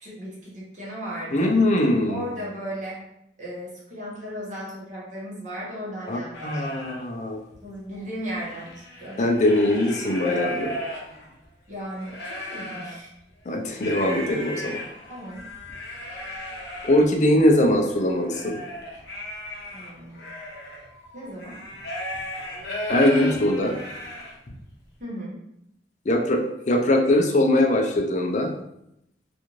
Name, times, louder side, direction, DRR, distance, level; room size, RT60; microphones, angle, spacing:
voice 1, 0.0-1.5 2.1-3.0 3.4-6.5 7.6-9.3 11.7-13.1 15.1-15.5 19.7-20.3 21.1-21.6 25.0-25.4, equal, 45° right, -5 dB, 1.0 m, -36 dB
voice 2, 1.3-2.2 6.1-7.4 9.2-10.7 13.5-14.8 16.8-18.6 22.9-23.8 26.1-28.5, left 1 dB, 40° left, 2 dB, 0.4 m, -21 dB
sound 1, 6.3-7.0 7.5-7.6 7.9-11.4 11.9-13.0 13.7-24.6, equal, 75° left, 0.7 m, -35 dB
2.5 x 2.4 x 3.0 m, 0.80 s
head